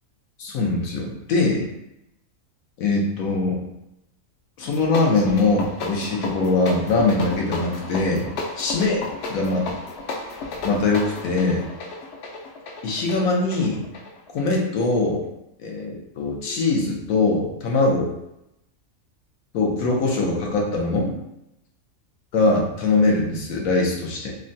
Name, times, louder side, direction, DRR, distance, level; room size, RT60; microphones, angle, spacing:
voice 1, 0.4-1.7 2.8-3.6 4.6-8.3 8.6-9.0 9.3-9.7 10.6-11.6 12.8-13.8 14.3-15.2 15.6-18.1 19.5-21.2 22.3-24.3, left 3 dB, 85° left, -1 dB, 1.2 m, -22 dB
sound 1, 4.6-14.9, left 3 dB, 65° left, 0.7 m, -33 dB
3.6 x 2.1 x 2.6 m, 0.84 s
omnidirectional pair, 1.4 m